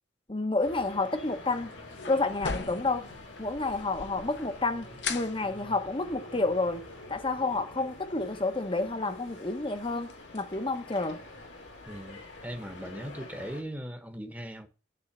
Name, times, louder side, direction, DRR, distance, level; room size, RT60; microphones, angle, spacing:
voice 1, 0.3-1.7 2.1-3.1 3.4-11.2, left 3 dB, 30° left, 1.0 m, -30 dB
sound 1, 0.6-13.6, left 2 dB, 85° left, 2.8 m, -47 dB
sound 2, 1.3-12.9, left 5 dB, 65° left, 0.9 m, -44 dB
voice 2, 11.9-14.7, equal, 10° right, 1.2 m, -39 dB
10.5 x 3.9 x 6.8 m
head